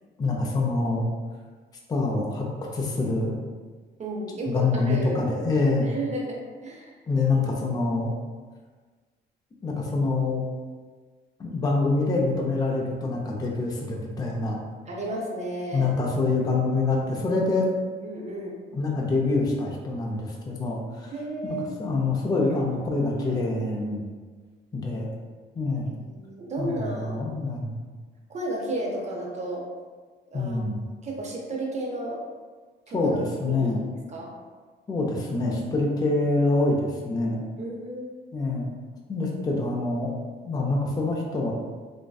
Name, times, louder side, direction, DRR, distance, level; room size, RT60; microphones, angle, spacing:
voice 1, 0.2-1.1 1.9-2.5 2.7-3.3 4.5-5.9 7.1-8.1 9.6-10.4 11.4-14.6 15.7-17.7 18.7-21.1 21.4-24.0 24.7-25.1 25.6-25.9 26.6-27.8 30.3-30.8 32.9-33.9 34.9-37.4 38.3-38.7 39.1-40.1 40.4-41.5, left 3 dB, 20° left, -2 dB, 0.4 m, -25 dB
voice 2, 4.0-5.3 5.8-7.0 14.9-15.9 18.0-18.6 21.1-21.8 26.0-27.2 28.3-29.7 30.3-30.6 31.0-32.2 32.9-33.2 33.4-33.8 34.1-34.3 37.6-38.1, right 1 dB, 35° right, -1 dB, 0.6 m, -33 dB
2.5 x 2.1 x 2.3 m, 1.4 s
cardioid pair, 90°, 20 cm